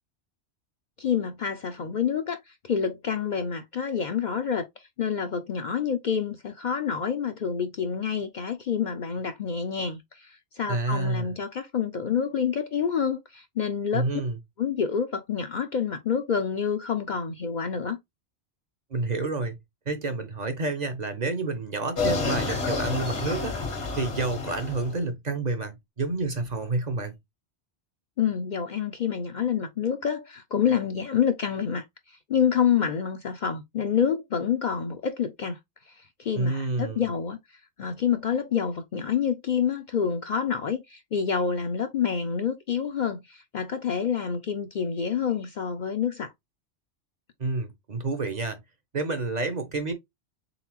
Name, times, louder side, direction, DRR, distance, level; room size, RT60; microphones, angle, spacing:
voice 1, 1.0-14.0 14.6-18.0 28.2-35.6 35.9-37.4 37.8-46.3, left 7 dB, 55° left, 0.6 m, -28 dB
voice 2, 10.7-11.3 13.9-14.4 18.9-19.6 19.9-23.5 24.0-27.1 36.3-37.1 47.4-48.6 48.9-49.9, right 3 dB, 45° right, 0.8 m, -29 dB
sound 1, 21.9-25.0, left 4 dB, 80° left, 1.6 m, -29 dB
4.0 x 3.8 x 2.8 m
omnidirectional pair, 1.1 m